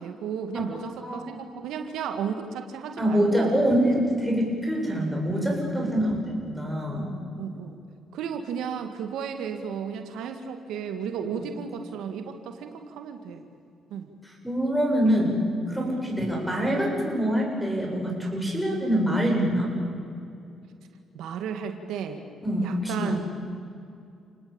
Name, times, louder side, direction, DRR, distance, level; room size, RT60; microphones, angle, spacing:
voice 1, 0.0-3.6 5.8-6.2 7.4-7.8 8.1-13.4 13.9-14.1 15.9-16.1 18.5-18.7 21.1-22.2 22.6-23.4, right 7 dB, 85° right, 6 dB, 2.0 m, -34 dB
voice 2, 3.0-7.1 11.4-11.5 14.4-19.7 22.4-23.2, equal, ahead, -2 dB, 7.8 m, -25 dB
30.0 x 19.5 x 8.9 m, 2.5 s
cardioid pair, 90°, 0 cm